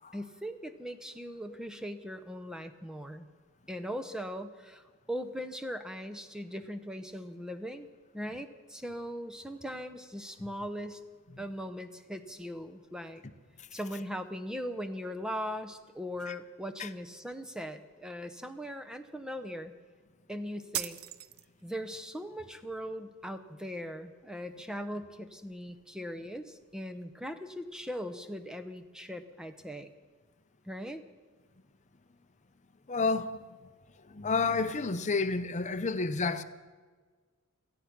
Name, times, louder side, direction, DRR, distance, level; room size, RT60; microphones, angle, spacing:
voice 1, 0.1-3.3 3.7-7.9 8.1-11.0 11.4-13.2 13.7-19.7 20.3-21.0 21.6-29.9 30.7-31.0, equal, 5° right, 0.7 m, -39 dB
sound 1, 20.7-21.8, right 13 dB, 70° right, 0.5 m, -37 dB
voice 2, 32.9-33.6 34.0-36.4, left 4 dB, 30° left, 0.7 m, -31 dB
17.5 x 13.5 x 6.0 m
head